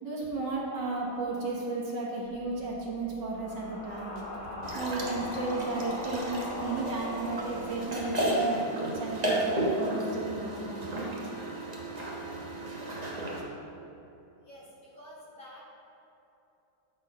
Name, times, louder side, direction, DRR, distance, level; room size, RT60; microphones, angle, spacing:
voice 1, 0.0-4.2 4.7-11.1, right 3 dB, 60° right, -3 dB, 1.8 m, -34 dB
sound 1, 2.2-8.4, left 2 dB, 80° left, 2.5 m, -41 dB
sound 2, 3.9-13.4, right 2 dB, 90° right, 1.8 m, -52 dB
sound 3, 4.6-13.4, right 1 dB, 25° right, 0.9 m, -33 dB
voice 2, 14.4-15.6, equal, 45° left, -7 dB, 2.2 m, -49 dB
12.0 x 4.5 x 5.3 m, 3.0 s
omnidirectional pair, 2.2 m